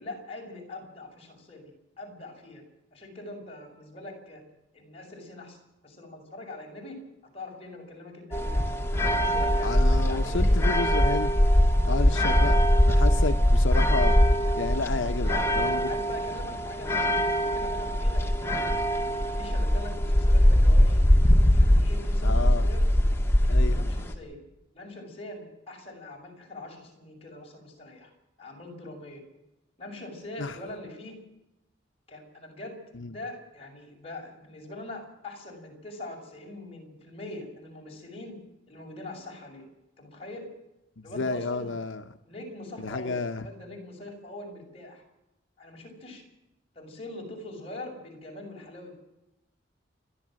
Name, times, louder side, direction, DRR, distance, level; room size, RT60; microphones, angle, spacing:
voice 1, 0.0-1.7 2.0-2.6 2.9-4.4 4.7-5.6 5.8-7.0 7.3-8.8 9.2-11.1 12.3-12.5 15.2-18.7 19.2-22.8 23.4-24.4 24.7-28.1 28.4-29.2 29.8-31.2 32.1-32.8 33.0-38.4 38.7-39.6 40.0-40.5 41.0-41.8 42.3-45.0 45.6-46.2 46.7-49.0, left 2 dB, 30° left, 0 dB, 6.5 m, -42 dB
sound 1, 8.3-24.1, equal, 15° left, 2.0 m, -22 dB
voice 2, 9.6-11.3 11.8-15.9 22.2-22.7 23.5-23.9 30.4-30.6 32.9-33.2 41.0-42.2 42.8-43.5, left 3 dB, 85° left, 8 dB, 0.9 m, -32 dB
29.5 x 11.5 x 7.6 m, 0.90 s
head